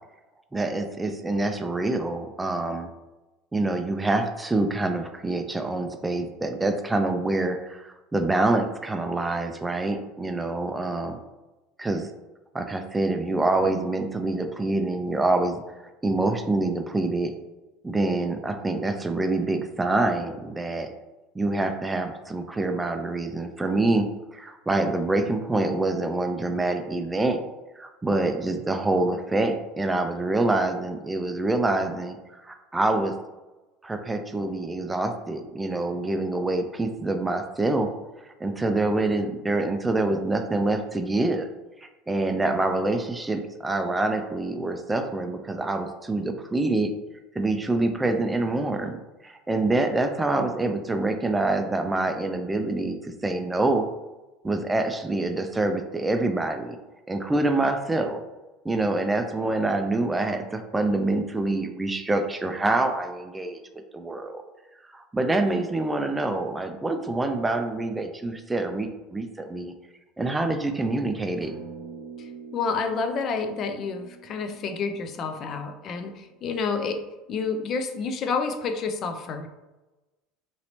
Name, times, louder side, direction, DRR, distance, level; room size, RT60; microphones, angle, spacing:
voice 1, 0.5-2.9 3.5-11.2 11.8-12.0 12.5-15.6 16.0-17.3 17.8-20.9 21.4-27.4 27.8-32.2 32.4-33.1 33.8-37.9 38.4-41.5 41.8-46.9 47.4-49.0 49.2-53.8 54.4-56.8 57.1-58.2 58.6-63.6 63.9-64.4 64.9-69.7 70.2-71.6, right 2 dB, 15° right, 6 dB, 0.3 m, -26 dB
sound 1, 71.4-76.1, right 5 dB, 85° right, 0.7 m, -44 dB
voice 2, 72.2-77.0 77.3-79.5, left 4 dB, 45° left, 6 dB, 0.4 m, -29 dB
3.0 x 2.8 x 2.7 m, 1.1 s
hypercardioid pair, 90°, 0 cm